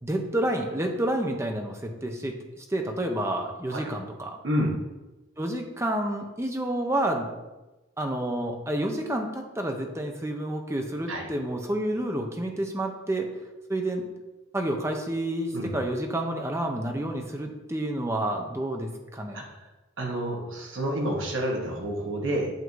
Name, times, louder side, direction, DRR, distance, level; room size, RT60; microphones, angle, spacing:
voice 1, 0.0-4.4 5.4-7.3 8.0-13.3 13.7-14.1 14.5-19.4, right 1 dB, 15° right, 3 dB, 0.6 m, -29 dB
voice 2, 20.0-22.5, equal, 65° right, 0 dB, 1.1 m, -29 dB
8.0 x 2.7 x 4.6 m, 1.1 s
head